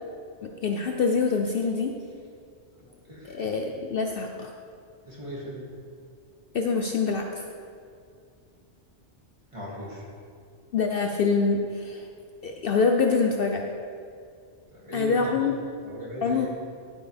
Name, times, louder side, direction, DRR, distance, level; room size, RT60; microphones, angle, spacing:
voice 1, 0.4-2.0 3.2-4.5 6.5-7.4 10.7-12.1 12.4-13.7 14.9-15.5 16.2-16.5, left 4 dB, 60° left, 3 dB, 0.8 m, -25 dB
voice 2, 2.8-3.4 5.0-5.6 9.5-10.1 14.7-15.5 15.8-16.5, equal, 25° right, -6 dB, 2.5 m, -39 dB
12.0 x 9.2 x 3.4 m, 2.3 s
omnidirectional pair, 1.2 m